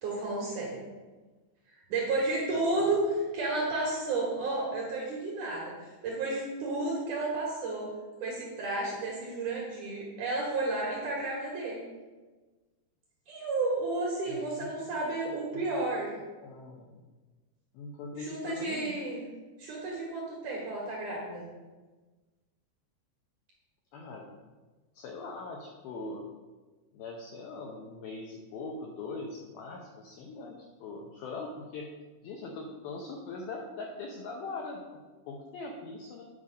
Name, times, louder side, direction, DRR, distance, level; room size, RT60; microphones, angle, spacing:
voice 1, 0.0-0.8 1.7-3.0 3.3-7.9 8.2-11.8 13.3-16.1 18.2-19.2 19.6-21.5, right 2 dB, 60° right, -3 dB, 2.3 m, -32 dB
voice 2, 2.5-3.0 14.3-14.8 15.5-15.8 16.4-17.0 17.7-19.0 23.9-24.4 24.9-26.2 26.9-31.9 32.2-36.3, left 3 dB, 80° left, 0 dB, 2.2 m, -41 dB
9.5 x 5.2 x 5.1 m, 1.3 s
omnidirectional pair, 5.3 m